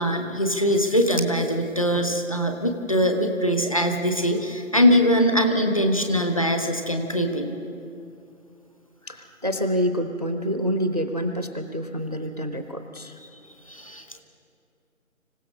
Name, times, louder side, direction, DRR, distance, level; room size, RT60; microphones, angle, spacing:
voice 1, 0.0-7.5 13.7-14.2, equal, 25° left, 5 dB, 1.0 m, -22 dB
voice 2, 9.1-13.2, equal, 30° right, 8 dB, 0.7 m, -27 dB
25.5 x 16.0 x 6.5 m, 2.5 s
figure-of-eight pair, 170°, 42 cm